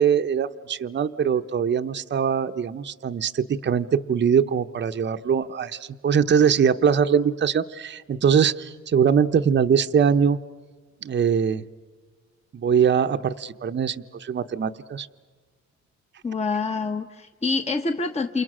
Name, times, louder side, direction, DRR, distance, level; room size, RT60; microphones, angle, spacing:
voice 1, 0.0-10.4 11.0-11.6 12.5-15.1, right 7 dB, 35° right, 8 dB, 0.8 m, -22 dB
voice 2, 16.2-18.4, left 4 dB, 20° left, 6 dB, 1.1 m, -26 dB
29.0 x 28.0 x 6.2 m, 1.5 s
cardioid pair, 90°, 30 cm